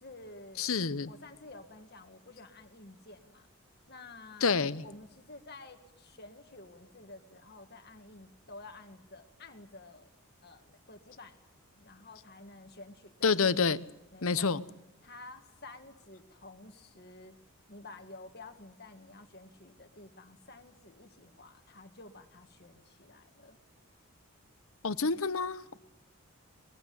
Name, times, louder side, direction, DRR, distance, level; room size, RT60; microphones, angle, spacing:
voice 1, 0.0-0.7 1.1-3.5 3.9-10.1 10.4-11.4 11.7-13.4 14.1-14.5 15.0-17.4 17.7-23.6, left 2 dB, 45° left, 6 dB, 1.9 m, -51 dB
voice 2, 0.6-1.1 4.4-4.8 13.2-13.8 14.2-14.6 24.8-25.8, left 5 dB, 70° left, 15 dB, 0.8 m, -28 dB
21.5 x 15.5 x 9.7 m, 0.93 s
head